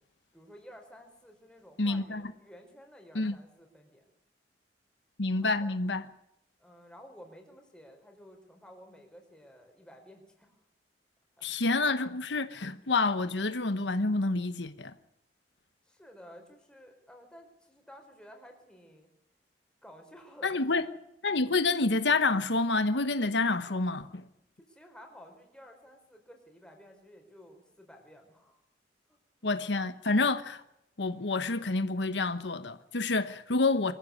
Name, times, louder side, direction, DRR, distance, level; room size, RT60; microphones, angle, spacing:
voice 1, 0.3-4.0 5.4-5.7 6.6-10.6 11.4-11.5 15.8-19.1 19.8-20.9 24.7-28.6 29.1-29.2, equal, 5° left, 4.7 m, -53 dB
voice 2, 1.8-2.2 3.1-3.4 5.2-6.0 11.4-14.9 20.4-20.8 21.2-24.2 29.4-30.6 31.0-33.9, left 3 dB, 85° left, 1.2 m, -28 dB
23.5 x 15.0 x 9.7 m
head